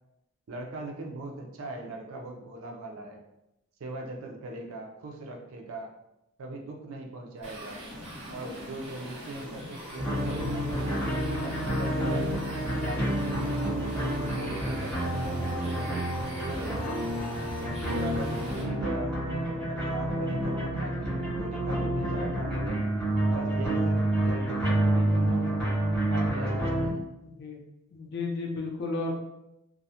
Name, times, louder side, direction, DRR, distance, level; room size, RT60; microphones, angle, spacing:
voice 1, 0.5-3.2 3.8-5.9 6.4-7.8 8.3-10.7 11.1-13.6 13.9-17.0 17.6-22.8 23.3-25.6 26.1-27.0, right 2 dB, 75° right, 1 dB, 0.4 m, -40 dB
sound 1, 7.4-18.6, equal, 30° right, 0.9 m, -42 dB
sound 2, 10.0-26.9, right 1 dB, 5° left, 0.8 m, -28 dB
voice 2, 27.2-27.6 27.9-29.1, left 3 dB, 50° left, 0 dB, 0.4 m, -33 dB
2.3 x 2.0 x 2.7 m, 0.87 s
head